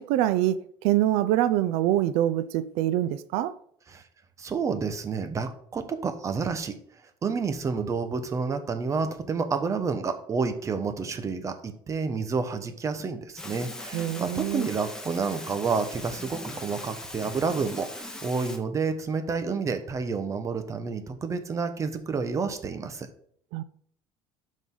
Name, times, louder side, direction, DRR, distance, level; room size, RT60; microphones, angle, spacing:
voice 1, 0.0-3.5 13.9-14.7 23.5-23.6, right 13 dB, 80° right, 0.5 m, -25 dB
voice 2, 4.4-6.8 7.2-23.1, right 5 dB, 30° right, 1.4 m, -29 dB
sound 1, 13.4-18.6, left 1 dB, 5° left, 1.7 m, -40 dB
12.5 x 5.3 x 4.0 m
cardioid pair, 120°, 10 cm